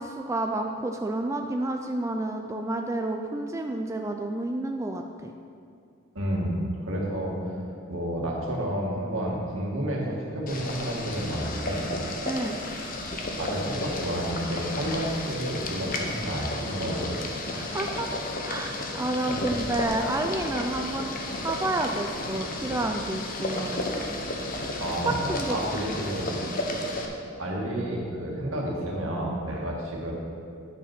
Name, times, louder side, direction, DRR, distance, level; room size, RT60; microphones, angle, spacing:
voice 1, 0.0-5.3 12.3-12.6 17.5-18.1 18.4-21.1 21.4-24.0 25.3-25.6 26.0-26.1 26.4-26.5, right 2 dB, 15° right, 3 dB, 0.3 m, -30 dB
voice 2, 6.1-7.4 7.9-11.9 13.3-17.2 19.3-19.4 24.7-26.4 27.4-30.1, right 1 dB, 75° right, -2 dB, 1.8 m, -30 dB
Boiling, 10.5-27.1, left 2 dB, 45° left, 0.9 m, -33 dB
9.7 x 5.5 x 5.9 m, 2.3 s
head